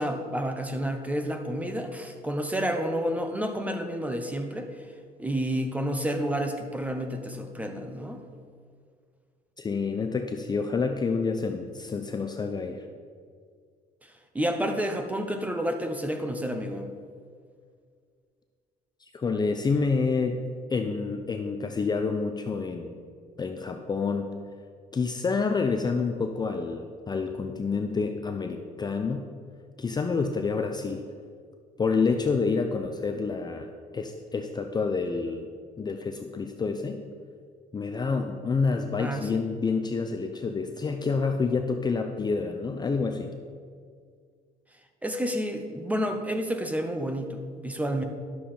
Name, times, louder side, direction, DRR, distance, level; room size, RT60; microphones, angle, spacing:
voice 1, 0.0-4.7 5.2-8.2 14.3-16.9 39.0-39.3 45.0-48.0, equal, 10° right, 6 dB, 0.9 m, -30 dB
voice 2, 9.6-12.8 19.1-20.4 20.7-22.9 23.4-24.3 24.9-29.3 29.8-31.0 31.8-33.7 33.9-35.5 35.8-37.0 37.7-43.3, left 4 dB, 25° left, 5 dB, 0.6 m, -28 dB
11.0 x 7.0 x 4.4 m, 2.1 s
cardioid pair, 110°, 17 cm